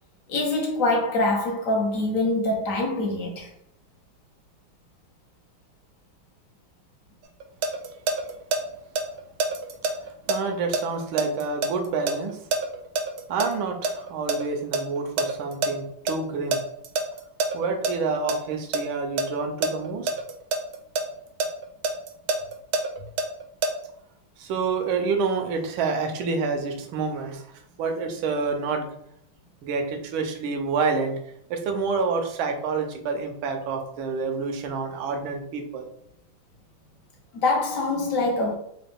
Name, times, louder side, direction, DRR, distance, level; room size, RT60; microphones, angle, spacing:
voice 1, 0.3-3.5 37.3-38.5, left 2 dB, 60° left, 0.9 m, -24 dB
sound 1, 7.2-8.6 8.9-13.5 13.8-15.7 16.1-16.2 16.5-17.9 18.3-18.8 19.2-21.0 21.4-23.7, right 3 dB, 70° right, 0.9 m, -25 dB
voice 2, 10.0-12.4 13.3-16.6 17.5-20.1 24.4-27.4 27.8-28.9 29.6-31.2 31.5-35.9, right 4 dB, 85° right, 1.5 m, -28 dB
3.9 x 2.3 x 3.5 m
omnidirectional pair, 2.2 m